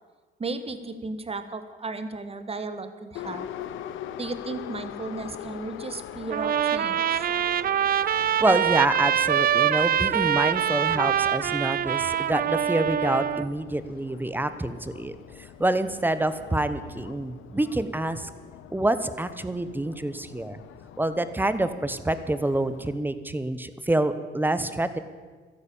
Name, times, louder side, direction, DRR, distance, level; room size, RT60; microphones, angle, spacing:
voice 1, 0.4-3.5 4.2-7.3, right 3 dB, 30° right, 10 dB, 1.5 m, -35 dB
Subway metro underground, 3.1-23.0, left 11 dB, 85° left, 0.8 m, -43 dB
Trumpet, 6.3-13.5, right 10 dB, 50° right, 0.5 m, -24 dB
voice 2, 8.0-18.3 18.7-20.6 21.0-25.0, right 1 dB, 10° right, 12 dB, 1.1 m, -27 dB
14.0 x 10.5 x 8.7 m, 1.5 s
cardioid pair, 90°, 20 cm